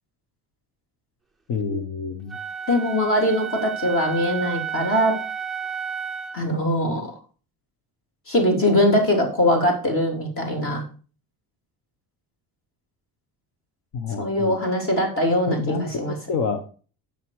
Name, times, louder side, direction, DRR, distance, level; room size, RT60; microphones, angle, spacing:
voice 1, 1.5-2.4 13.9-14.6 15.5-16.6, left 5 dB, 55° left, 6 dB, 1.3 m, -28 dB
Wind instrument woodwind instrument, 2.3-6.4, right 8 dB, ahead, 0.4 m, -32 dB
voice 2, 2.7-5.1 6.3-7.1 8.3-10.8 14.2-16.2, equal, 30° left, 2 dB, 3.1 m, -22 dB
9.5 x 6.9 x 4.9 m, 0.38 s
cardioid pair, 175°, 41 cm